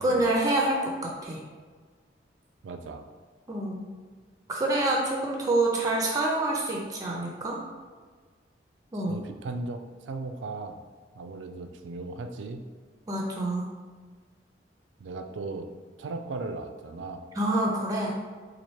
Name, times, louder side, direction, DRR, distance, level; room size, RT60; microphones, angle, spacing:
voice 1, 0.0-1.4 3.5-3.8 4.5-7.6 8.9-9.2 13.1-13.6 17.4-18.1, right 2 dB, 20° right, 0 dB, 0.4 m, -27 dB
voice 2, 2.6-3.0 8.9-10.8 11.2-12.6 15.0-15.7 16.0-17.2, right 3 dB, 85° right, 7 dB, 0.3 m, -37 dB
4.2 x 2.4 x 3.1 m, 1.5 s
head